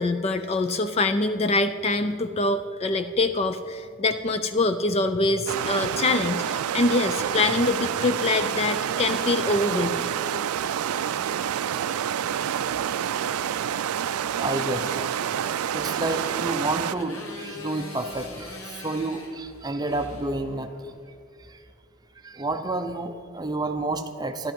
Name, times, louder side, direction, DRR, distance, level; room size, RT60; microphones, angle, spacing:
voice 1, 0.0-10.1, left 2 dB, 30° left, 10 dB, 0.3 m, -24 dB
sound 1, 5.5-17.0, right 9 dB, 85° right, 0.4 m, -28 dB
Motorcycle, 14.3-21.0, left 2 dB, 70° left, 1.8 m, -43 dB
voice 2, 14.4-15.1 15.7-20.9 21.5-21.6 22.2-24.5, right 2 dB, 20° right, 7 dB, 0.6 m, -30 dB
13.0 x 11.5 x 5.3 m, 2.3 s
head